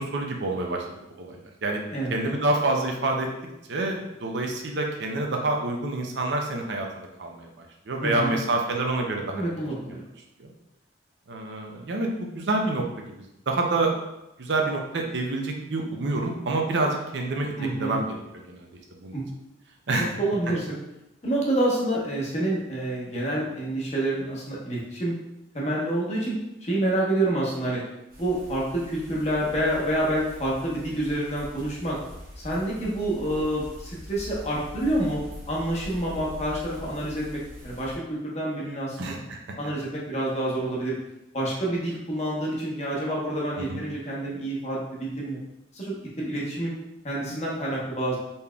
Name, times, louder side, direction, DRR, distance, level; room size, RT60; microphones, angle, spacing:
voice 1, 0.0-1.8 2.1-3.3 3.7-9.5 10.4-10.5 11.3-13.1 13.5-13.9 14.4-17.5 17.8-18.7 19.0-19.1 19.9-20.1 39.0-39.6 43.6-43.8, right 2 dB, 65° right, 1 dB, 0.6 m, -27 dB
voice 2, 1.9-2.2 8.0-8.4 9.3-10.0 17.6-18.0 19.1-19.3 20.0-20.8 21.2-25.1 25.5-27.8 28.2-32.0 32.4-35.2 35.5-39.1 39.5-40.9 41.3-45.4 45.7-46.7 47.0-48.2, right 1 dB, 35° left, -5 dB, 0.9 m, -28 dB
sound 1, 28.1-38.0, equal, 50° right, 1.2 m, -43 dB
4.1 x 3.4 x 2.3 m, 0.90 s
head